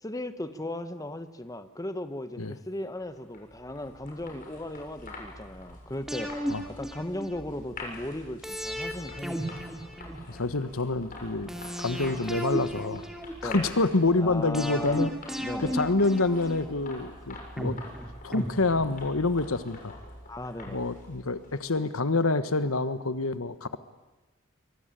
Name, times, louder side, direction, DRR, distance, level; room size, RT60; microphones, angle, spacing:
voice 1, 0.0-6.4 6.7-9.6 13.4-13.7 14.2-15.7 20.3-20.9, left 1 dB, 15° left, 10 dB, 1.2 m, -37 dB
sound 1, 3.0-22.0, left 2 dB, 40° left, 7.2 m, -46 dB
sound 2, 6.1-7.6 8.4-10.6 11.5-13.7 14.5-16.9 17.6-19.2 19.5-19.6, equal, ahead, 2.6 m, -35 dB
voice 2, 10.3-11.5 11.8-13.0 13.4-15.1 15.7-17.8 18.2-19.9 20.7-23.8, left 3 dB, 80° left, 12 dB, 1.4 m, -27 dB
24.5 x 24.0 x 9.1 m, 1.2 s
head